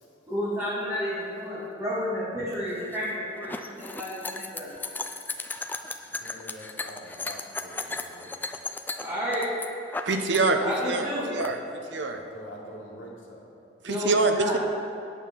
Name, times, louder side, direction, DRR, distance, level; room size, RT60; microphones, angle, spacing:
voice 1, 0.3-3.5 3.8-4.7 9.0-9.5 10.6-11.3 13.9-14.6, equal, 15° right, -12 dB, 2.3 m, -31 dB
sound 1, 2.7-10.4 10.7-11.5, left 3 dB, 10° left, 0.3 m, -36 dB
voice 2, 6.1-8.3 12.1-13.4, equal, 85° left, -2 dB, 1.8 m, -45 dB
voice 3, 10.1-11.6 11.9-12.2 13.8-14.6, right 3 dB, 65° right, 6 dB, 0.8 m, -25 dB
9.2 x 5.6 x 6.9 m, 2.7 s
head